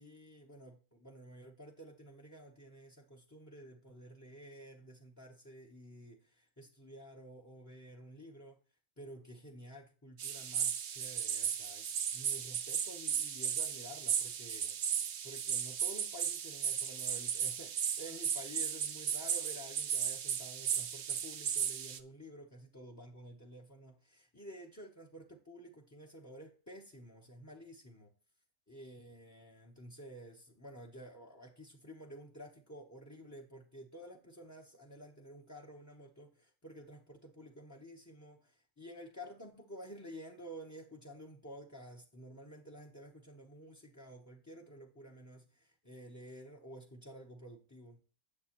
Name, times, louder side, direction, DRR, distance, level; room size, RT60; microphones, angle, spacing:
voice 1, 0.0-8.6 9.0-11.9 12.1-14.8 15.2-28.1 28.7-48.0, equal, 15° left, 0.8 m, -51 dB
sound 1, 10.2-22.0, right 8 dB, 60° right, 0.9 m, -35 dB
9.8 x 7.6 x 3.0 m
omnidirectional pair, 1.5 m